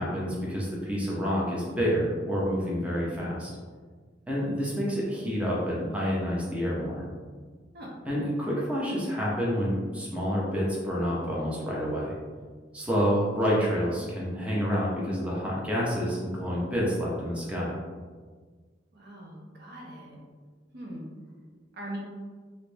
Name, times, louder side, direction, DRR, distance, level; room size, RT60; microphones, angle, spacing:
voice 1, 0.0-3.5 4.3-7.0 8.1-12.1 12.7-17.7, equal, 5° right, -5 dB, 0.7 m, -28 dB
voice 2, 18.9-20.2 20.7-21.1 21.7-22.0, right 1 dB, 60° right, -2 dB, 0.7 m, -41 dB
3.1 x 2.6 x 3.3 m, 1.5 s
head